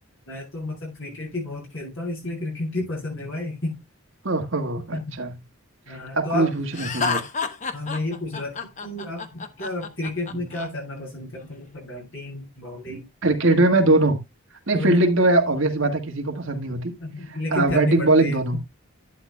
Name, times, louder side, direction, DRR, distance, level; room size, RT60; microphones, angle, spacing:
voice 1, 0.3-3.8 4.9-5.1 5.9-6.5 7.7-13.0 14.7-15.0 17.0-18.6, left 2 dB, 60° left, 7.5 m, -31 dB
voice 2, 4.2-5.3 5.9-7.2 12.9-14.2 14.7-16.9 17.3-18.6, right 2 dB, 60° right, 1.6 m, -21 dB
Laughter, 6.7-10.7, left 4 dB, 35° left, 0.8 m, -29 dB
11.5 x 9.4 x 2.2 m
head